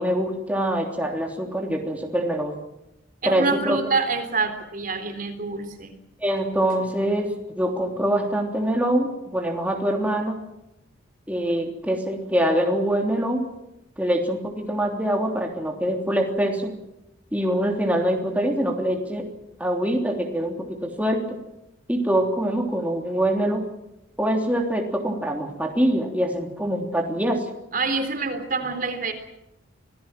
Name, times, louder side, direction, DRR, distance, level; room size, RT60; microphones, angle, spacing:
voice 1, 0.0-2.5 3.2-3.8 6.2-10.4 11.3-13.5 14.0-16.7 17.3-19.2 19.6-21.4 21.9-23.6 24.2-27.5, right 1 dB, 5° right, 1 dB, 3.3 m, -24 dB
voice 2, 3.2-5.9 27.7-29.1, right 4 dB, 45° right, 8 dB, 3.6 m, -26 dB
26.5 x 18.5 x 7.6 m, 0.88 s
head